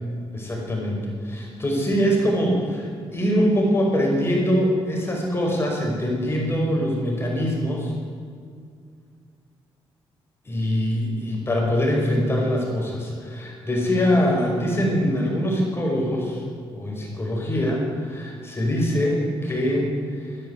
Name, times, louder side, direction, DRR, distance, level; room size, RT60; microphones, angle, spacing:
voice 1, 0.3-7.9 10.5-16.4 16.7-19.9 20.2-20.4, equal, 25° left, -1 dB, 5.3 m, -23 dB
13.0 x 10.5 x 9.8 m, 2.2 s
cardioid pair, 80°, 10 cm